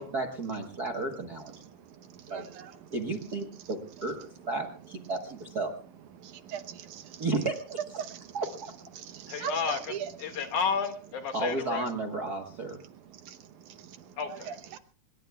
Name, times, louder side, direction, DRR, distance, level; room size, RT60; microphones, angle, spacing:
voice 1, 0.1-1.5 2.3-2.4 2.9-5.7 7.2-7.8 8.3-8.7 11.3-12.8, right 3 dB, 45° right, 3 dB, 1.2 m, -33 dB
voice 2, 1.5-3.0 3.5-4.1 6.1-7.3 8.0-8.4 8.9-10.5 12.8-14.8, right 8 dB, 70° right, 9 dB, 2.4 m, -42 dB
voice 3, 9.3-11.9 14.2-14.6, left 6 dB, 70° left, 5 dB, 3.4 m, -32 dB
25.5 x 21.5 x 2.3 m, 0.41 s
omnidirectional pair, 3.7 m